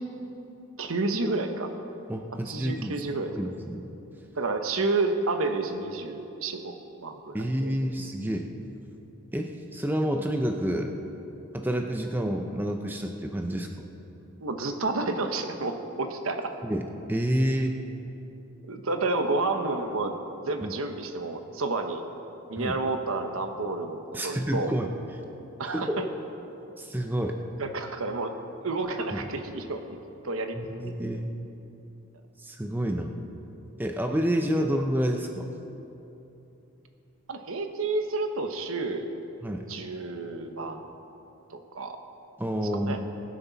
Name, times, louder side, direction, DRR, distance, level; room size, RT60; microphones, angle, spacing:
voice 1, 0.8-1.7 2.5-3.3 4.4-7.7 14.4-16.5 18.7-20.2 20.5-22.0 22.5-24.7 25.6-26.0 27.6-28.3 28.6-30.0 30.2-30.8 37.3-39.1 39.7-40.8 41.5-42.0 42.8-43.0, right 3 dB, 75° right, 6 dB, 1.0 m, -30 dB
voice 2, 2.1-3.0 3.3-3.9 7.3-8.5 9.3-10.9 11.5-13.7 16.6-17.8 20.6-20.7 22.6-22.8 24.1-24.9 25.7-26.0 26.8-27.4 29.1-29.3 30.5-31.3 32.4-33.2 33.8-35.5 39.4-39.7 42.4-43.1, equal, 10° right, 4 dB, 0.6 m, -29 dB
22.0 x 9.8 x 4.1 m, 3.0 s
head